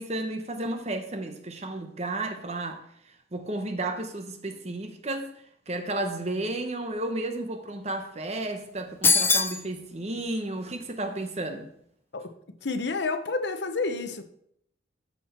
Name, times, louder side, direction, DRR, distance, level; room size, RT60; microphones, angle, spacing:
voice 1, 0.0-2.8 3.3-5.3 5.7-11.7, right 2 dB, 35° right, 1.0 m, -32 dB
sound 1, 9.0-9.6, left 4 dB, 10° left, 0.4 m, -21 dB
voice 2, 12.6-14.2, left 3 dB, 65° left, 0.9 m, -29 dB
13.0 x 4.5 x 4.5 m
head